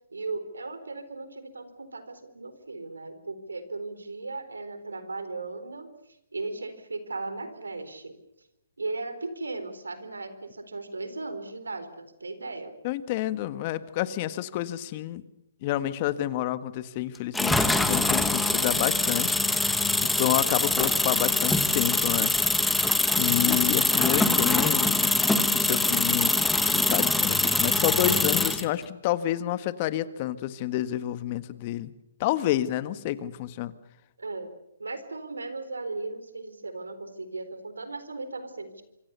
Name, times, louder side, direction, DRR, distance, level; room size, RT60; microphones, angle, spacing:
voice 1, 0.1-5.9 6.3-8.2 8.8-12.8 34.2-34.5 34.8-38.8, right 3 dB, 90° right, 11 dB, 4.1 m, -37 dB
voice 2, 12.8-15.2 15.6-19.4 19.6-22.3 23.2-24.9 25.5-31.9 32.2-33.7, left 13 dB, 40° left, 13 dB, 1.6 m, -29 dB
sound 1, 17.3-28.7, left 2 dB, 5° left, 1.7 m, -24 dB
26.5 x 25.0 x 6.9 m, 0.83 s
hypercardioid pair, 135°, 0 cm